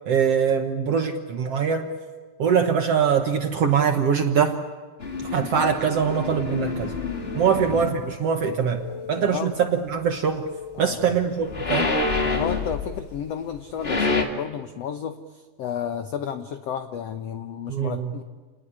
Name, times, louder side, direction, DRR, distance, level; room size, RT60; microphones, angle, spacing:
voice 1, 0.0-1.9 2.4-4.6 5.2-6.9 7.3-8.8 9.1-10.4 10.8-11.9 17.7-18.1, right 7 dB, 60° right, 6 dB, 1.6 m, -23 dB
sound 1, 5.0-8.0 11.2-13.2 13.6-14.2, left 3 dB, 25° left, 1.5 m, -27 dB
sound 2, 5.4-6.5 6.9-8.0 8.4-9.5 9.9-11.0, left 3 dB, 50° left, 9.0 m, -42 dB
voice 2, 7.4-7.8 8.8-9.5 10.7-11.2 12.2-18.2, left 8 dB, 85° left, 8 dB, 1.4 m, -32 dB
30.0 x 19.0 x 9.9 m, 1.4 s
omnidirectional pair, 4.2 m